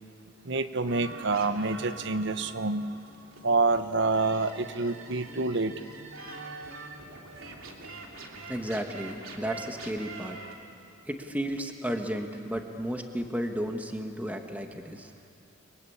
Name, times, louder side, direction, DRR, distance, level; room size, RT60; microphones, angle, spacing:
voice 1, 0.4-2.9 3.4-5.7, right 3 dB, 60° right, 11 dB, 1.1 m, -27 dB
sound 1, 0.8-10.5, right 3 dB, 85° right, 3.2 m, -44 dB
voice 2, 8.5-10.4 11.1-15.1, equal, 10° right, 4 dB, 1.6 m, -33 dB
29.5 x 23.5 x 8.6 m, 2.4 s
head